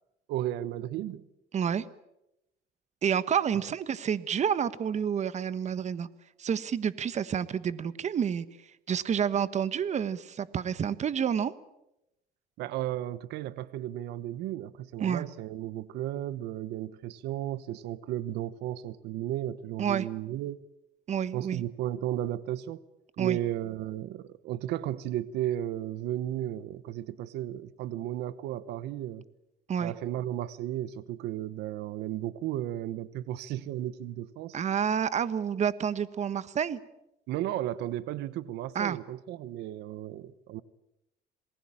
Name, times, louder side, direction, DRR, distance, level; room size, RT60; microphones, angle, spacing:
voice 1, 0.3-1.2 12.6-20.6 21.3-22.8 23.2-29.2 29.8-34.6 37.3-40.6, right 13 dB, 85° right, 16 dB, 1.1 m, -34 dB
voice 2, 1.5-1.9 3.0-6.1 6.4-8.4 8.9-11.5 15.0-15.2 19.8-20.1 21.1-21.6 23.2-23.4 29.7-29.9 34.5-36.8 38.7-39.0, right 8 dB, 45° right, 15 dB, 1.3 m, -29 dB
27.5 x 20.5 x 8.8 m, 0.87 s
cardioid pair, 110°, 17 cm